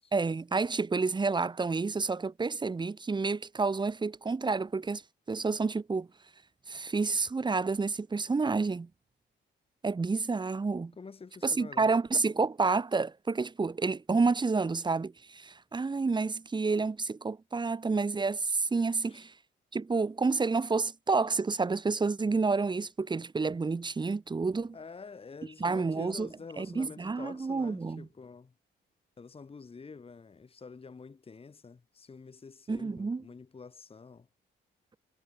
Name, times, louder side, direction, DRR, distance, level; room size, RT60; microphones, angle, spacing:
voice 1, 0.1-5.0 5.3-6.1 6.7-8.9 9.8-10.9 11.4-19.3 19.7-24.8 25.6-26.3 26.6-28.1 32.7-33.3, right 4 dB, 20° right, 1.0 m, -29 dB
voice 2, 11.0-11.9 19.1-19.2 24.7-28.5 29.2-34.3, left 4 dB, 30° left, 1.9 m, -47 dB
cardioid pair, 90°, 20 cm